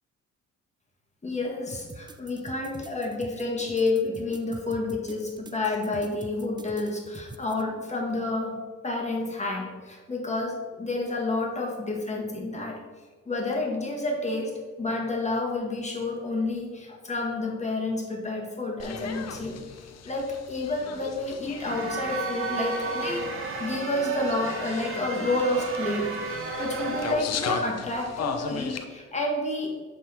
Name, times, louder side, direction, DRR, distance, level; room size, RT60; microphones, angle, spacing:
voice 1, 1.2-8.6 8.8-12.8 13.2-23.3 23.6-26.1 26.6-29.7, left 2 dB, 20° left, -1 dB, 1.6 m, -29 dB
sound 1, 1.7-7.6, right 3 dB, 15° right, 0.3 m, -45 dB
sound 2, 18.8-28.8, left 6 dB, 60° left, 0.7 m, -37 dB
sound 3, 21.6-27.1, right 3 dB, 45° right, 1.2 m, -33 dB
7.5 x 3.7 x 4.2 m, 1.4 s
cardioid pair, 90°, 30 cm